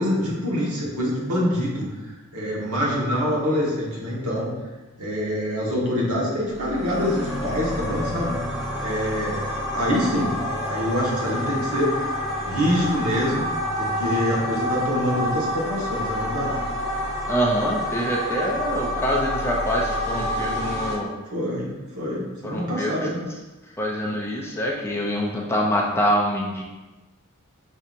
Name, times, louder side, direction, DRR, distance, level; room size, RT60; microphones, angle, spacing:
voice 1, 0.0-1.9 2.3-4.5 5.0-8.4 8.8-12.1 12.4-13.5 13.8-16.6 21.3-21.7 22.0-23.2, equal, 75° right, -5 dB, 1.2 m, -25 dB
sound 1, 6.5-21.0, left 1 dB, 10° right, 0.8 m, -28 dB
voice 2, 17.3-21.1 22.4-23.1 23.8-26.6, equal, 10° left, -2 dB, 0.4 m, -25 dB
5.4 x 2.8 x 2.5 m, 1.1 s
head